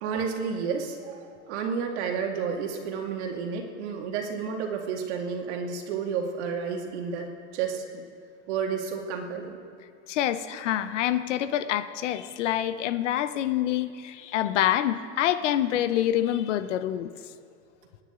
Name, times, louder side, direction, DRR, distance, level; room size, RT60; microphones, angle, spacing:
voice 1, 0.0-8.0 8.5-9.6, right 6 dB, 70° right, 2 dB, 2.3 m, -31 dB
voice 2, 10.1-17.1, left 12 dB, 80° left, 12 dB, 0.9 m, -26 dB
26.0 x 10.0 x 3.8 m, 2.4 s
supercardioid pair, 145°, 36 cm